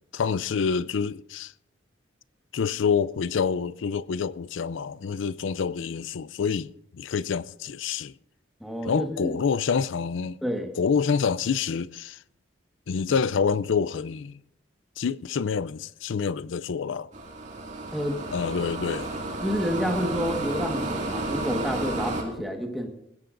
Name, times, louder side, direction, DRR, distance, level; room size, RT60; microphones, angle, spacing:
voice 1, 0.1-1.5 2.5-8.1 8.8-10.4 10.8-12.2 12.9-14.4 15.0-17.1 18.3-19.2, left 6 dB, 75° left, 0.4 m, -27 dB
voice 2, 8.6-9.3 10.4-10.7 17.9-18.2 19.4-22.9, equal, ahead, 1.5 m, -29 dB
sound 1, 17.1-22.2, right 2 dB, 35° right, 2.2 m, -32 dB
20.0 x 17.0 x 2.6 m
head